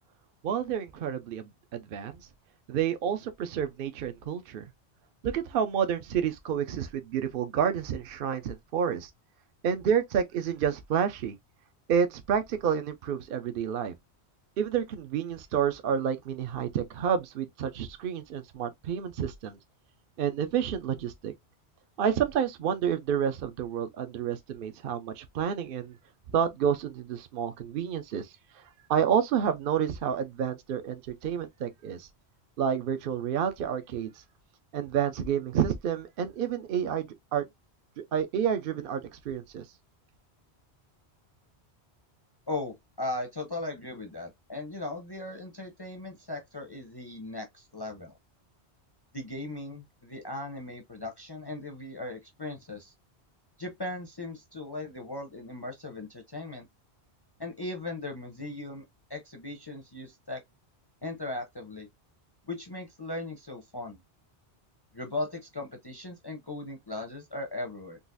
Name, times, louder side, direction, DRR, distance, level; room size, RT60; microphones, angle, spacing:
voice 1, 0.4-2.3 2.7-4.7 5.2-9.1 9.6-11.4 11.9-13.9 14.6-19.6 20.2-21.3 22.0-26.0 26.3-32.1 32.6-34.2 34.7-37.4 38.0-39.7, right 8 dB, 60° right, 0.7 m, -29 dB
voice 2, 42.5-48.1 49.1-52.9 53.6-56.7 57.4-58.8 59.1-60.4 61.0-61.9 62.5-64.0 64.9-68.0, left 2 dB, 30° left, 0.5 m, -38 dB
3.8 x 2.4 x 2.4 m
omnidirectional pair, 1.1 m